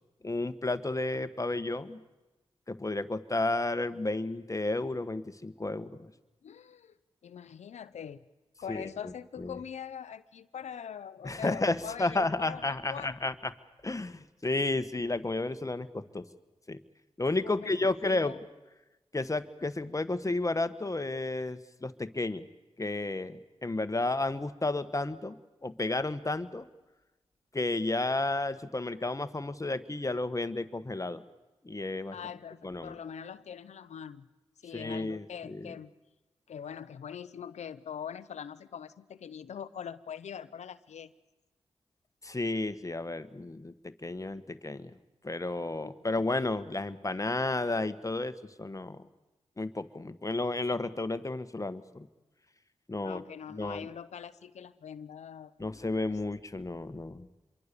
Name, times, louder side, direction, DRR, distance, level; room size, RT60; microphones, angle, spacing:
voice 1, 0.2-2.0 2.7-6.1 8.7-9.1 9.4-9.5 11.2-13.5 13.8-16.2 16.7-16.8 17.2-18.4 19.1-22.5 22.8-25.4 25.6-26.6 27.5-31.2 31.6-32.1 32.6-32.9 34.7-35.7 42.2-44.9 45.2-49.0 49.6-52.1 52.9-53.2 53.5-53.9 55.6-57.4, left 2 dB, 30° left, 12 dB, 1.4 m, -32 dB
voice 2, 6.4-7.0 7.2-8.2 8.6-13.4 17.4-18.4 32.1-34.3 34.6-35.9 36.5-41.1 45.8-45.9 53.0-55.9, left 8 dB, 85° left, 14 dB, 0.8 m, -43 dB
26.5 x 23.0 x 6.9 m, 1.1 s
cardioid pair, 45°, 11 cm